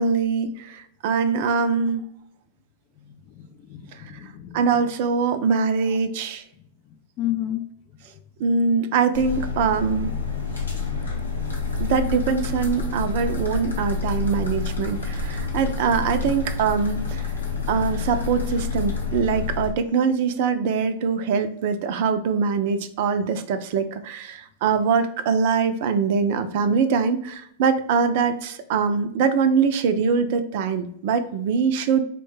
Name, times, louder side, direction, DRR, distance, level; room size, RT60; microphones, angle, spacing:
voice 1, 0.0-2.0 4.5-6.4 8.4-10.1 11.8-17.3 17.7-32.0, right 5 dB, 55° right, 0.4 m, -23 dB
voice 2, 3.0-4.8 6.5-8.2, left 13 dB, 40° left, 0.3 m, -33 dB
sound 1, 9.1-19.7, left 4 dB, 90° left, 0.9 m, -28 dB
4.2 x 2.2 x 3.1 m
hypercardioid pair, 100°, 0 cm